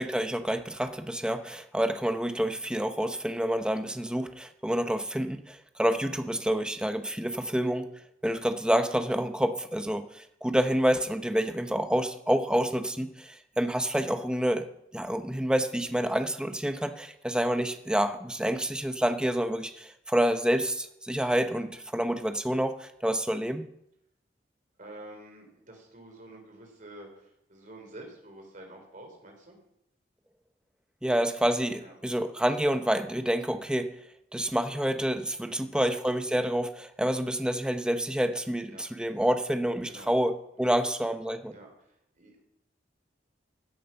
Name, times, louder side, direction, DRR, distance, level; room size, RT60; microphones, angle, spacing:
voice 1, 0.0-7.9 8.2-14.7 14.9-23.7 31.0-33.9 34.3-41.5, equal, 5° right, 8 dB, 0.8 m, -28 dB
voice 2, 24.8-29.6 31.8-31.9 35.4-35.8 38.7-38.9 39.8-40.1 40.7-40.8 41.5-42.4, right 1 dB, 45° right, 2 dB, 3.9 m, -48 dB
15.5 x 9.2 x 5.7 m, 0.79 s
head